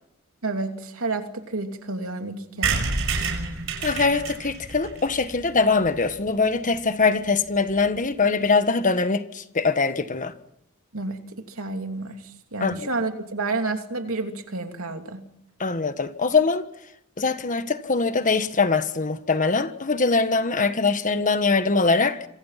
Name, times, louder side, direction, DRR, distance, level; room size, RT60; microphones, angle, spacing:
voice 1, 0.4-2.9 10.9-12.2 12.5-15.2, right 3 dB, 90° right, 3.0 m, -30 dB
sound 1, 2.6-6.3 6.7-6.8 7.0-7.1 7.3-7.4 7.6-7.9, right 4 dB, 70° right, 6.4 m, -29 dB
voice 2, 3.8-10.3 12.6-12.9 15.6-16.6 17.2-22.3, left 4 dB, 40° left, 1.4 m, -22 dB
27.0 x 26.0 x 5.9 m
head